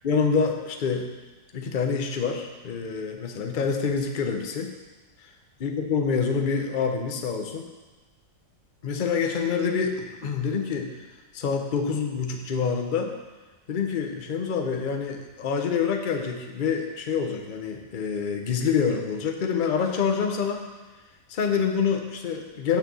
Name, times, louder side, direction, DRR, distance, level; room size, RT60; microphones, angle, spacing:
voice 1, 0.0-1.1 1.5-4.7 5.6-7.6 8.8-10.9 11.3-13.1 13.7-20.7 21.3-22.8, left 6 dB, 45° left, 3 dB, 0.6 m, -26 dB
6.8 x 6.0 x 6.9 m, 1.2 s
omnidirectional pair, 1.9 m